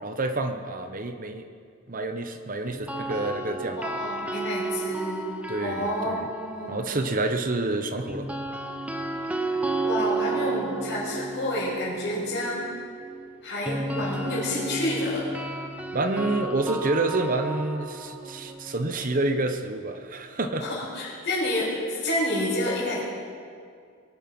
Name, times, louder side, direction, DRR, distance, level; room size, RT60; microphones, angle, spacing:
voice 1, 0.0-1.5 1.9-3.8 5.5-6.3 6.7-8.3 15.9-20.6, right 2 dB, 40° right, 7 dB, 0.9 m, -28 dB
sound 1, 2.7-6.8 8.1-20.0, right 2 dB, 5° right, 0.9 m, -33 dB
voice 2, 3.7-5.3 5.6-6.9 9.8-12.7 13.4-15.2 20.6-23.0, left 1 dB, 55° left, -10 dB, 4.8 m, -29 dB
23.0 x 9.0 x 6.1 m, 2.2 s
head